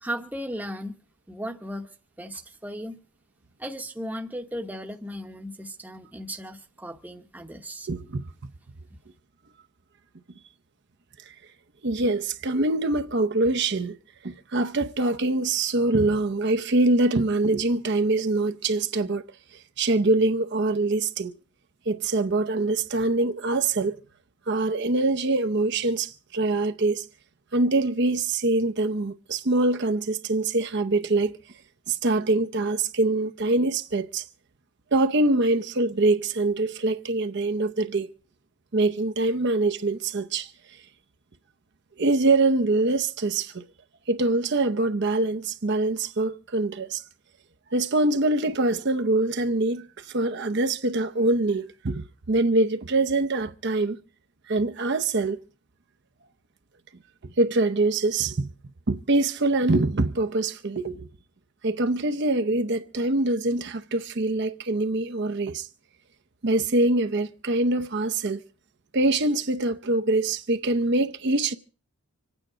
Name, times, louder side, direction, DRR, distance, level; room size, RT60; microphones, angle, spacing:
voice 1, 0.0-1.0 1.3-1.9 2.2-3.0 3.6-7.9, equal, 5° right, 0.9 m, -36 dB
voice 2, 7.9-8.5 11.3-11.4 11.8-14.0 14.2-19.2 19.5-21.3 21.9-24.0 24.5-27.0 27.5-31.4 31.9-34.2 34.9-38.1 38.7-40.5 42.0-43.6 44.1-47.0 47.7-54.0 54.5-55.4 57.4-58.5 58.9-61.1 61.6-65.7 66.4-68.4 68.9-71.5, right 2 dB, 50° right, 0.7 m, -24 dB
25.5 x 9.1 x 4.9 m
head